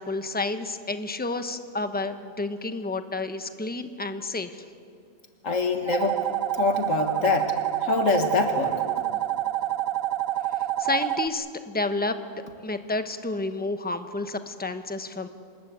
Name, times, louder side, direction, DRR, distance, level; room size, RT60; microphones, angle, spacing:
voice 1, 0.0-4.6 10.8-12.2 12.6-15.3, left 2 dB, 10° left, 8 dB, 1.0 m, -30 dB
voice 2, 5.4-7.6 7.8-8.8, left 4 dB, 75° left, 5 dB, 1.9 m, -25 dB
sound 1, 5.9-11.3, right 13 dB, 85° right, 1.3 m, -27 dB
26.0 x 20.5 x 8.2 m, 2.2 s
omnidirectional pair, 1.4 m